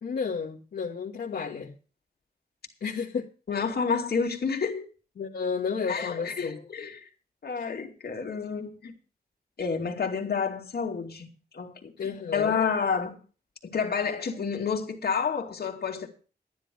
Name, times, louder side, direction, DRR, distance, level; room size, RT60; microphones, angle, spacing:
voice 1, 0.0-1.8 2.8-3.3 5.2-6.6 12.0-12.6, left 5 dB, 85° left, 1.6 m, -32 dB
voice 2, 3.5-4.8 5.9-7.1 7.4-8.9 9.6-11.3 11.5-11.9 12.3-13.2 13.6-16.1, left 5 dB, 70° left, 2.5 m, -29 dB
12.5 x 10.0 x 5.2 m
wide cardioid pair, 95°, 17 cm